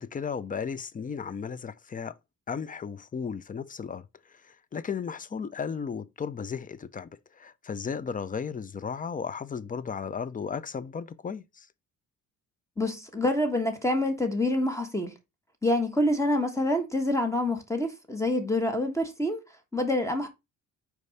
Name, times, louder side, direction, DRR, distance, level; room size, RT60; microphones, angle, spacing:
voice 1, 0.0-2.1 2.5-11.7, left 6 dB, 25° left, 0.6 m, -35 dB
voice 2, 12.8-15.1 15.6-19.4 19.7-20.3, left 1 dB, 10° left, 1.3 m, -26 dB
5.2 x 4.8 x 4.1 m
cardioid pair, 90°, 30 cm